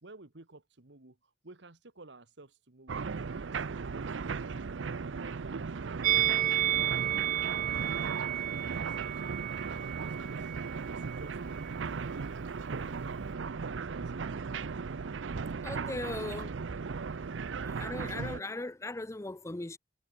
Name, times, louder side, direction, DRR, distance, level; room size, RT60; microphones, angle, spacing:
voice 1, 0.0-1.2 1.4-4.7 5.0-9.2 9.7-10.5 10.9-11.8 12.1-13.3 13.6-14.3, right 2 dB, 70° right, 1.7 m, -53 dB
sound 1, 2.9-18.4, right 5 dB, 90° right, 0.6 m, -37 dB
Musical instrument, 6.0-11.3 11.5-11.7, right 12 dB, 45° right, 0.3 m, -32 dB
sound 2, 11.3-16.1, equal, 50° left, 5.7 m, -61 dB
voice 2, 15.6-16.5 17.6-19.8, left 2 dB, 15° left, 0.6 m, -38 dB
head